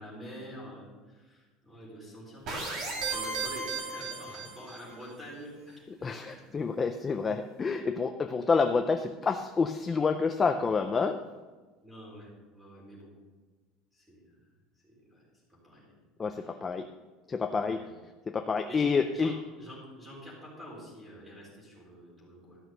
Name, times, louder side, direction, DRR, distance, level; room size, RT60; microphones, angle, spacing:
voice 1, 0.0-2.6 2.9-6.1 11.8-13.1 13.9-14.2 14.8-15.2 15.6-15.9 16.3-16.6 17.6-17.9 18.7-19.3 19.6-22.6, equal, 5° right, -4 dB, 4.1 m, -47 dB
sound 1, 2.5-4.9, right 4 dB, 40° right, 2.3 m, -35 dB
voice 2, 6.0-11.2 16.2-16.8 17.3-17.8 18.3-19.3, left 5 dB, 15° left, 6 dB, 0.4 m, -28 dB
13.5 x 6.1 x 6.6 m, 1.3 s
cardioid pair, 180°, 0 cm